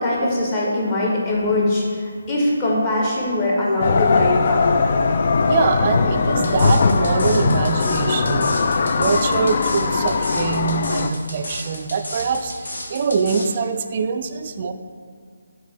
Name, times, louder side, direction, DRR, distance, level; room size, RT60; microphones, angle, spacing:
voice 1, 0.0-4.8, left 1 dB, 25° left, -4 dB, 1.3 m, -22 dB
sound 1, 3.8-11.1, left 4 dB, 45° left, 0.3 m, -19 dB
voice 2, 5.5-8.6 8.9-14.7, right 5 dB, 35° right, 8 dB, 0.3 m, -23 dB
sound 2, 6.4-13.5, left 1 dB, 60° left, 1.4 m, -32 dB
6.0 x 4.0 x 4.1 m, 2.1 s
figure-of-eight pair, 150°, 0 cm